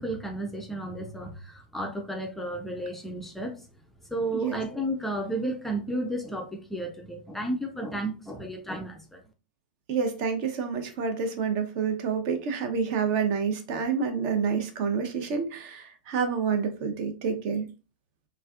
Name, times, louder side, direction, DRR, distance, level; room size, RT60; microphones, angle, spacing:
voice 1, 0.0-3.7 4.1-9.2, right 1 dB, 5° left, 2 dB, 0.4 m, -33 dB
voice 2, 9.9-17.7, right 6 dB, 40° right, 6 dB, 0.6 m, -28 dB
3.3 x 2.4 x 2.3 m, 0.32 s
figure-of-eight pair, 95°, 5 cm